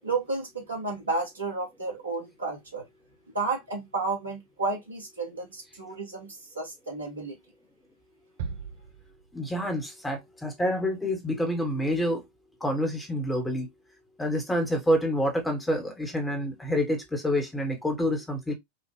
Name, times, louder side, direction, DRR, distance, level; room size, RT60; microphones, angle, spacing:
voice 1, 0.0-2.8 3.3-7.4, right 3 dB, 75° right, 1.6 m, -32 dB
sound 1, 8.4-9.8, right 6 dB, 55° right, 0.7 m, -39 dB
voice 2, 9.3-12.2 12.6-13.7 14.2-18.5, equal, 10° left, 1.2 m, -27 dB
4.6 x 2.4 x 3.1 m
figure-of-eight pair, 90°, 0 cm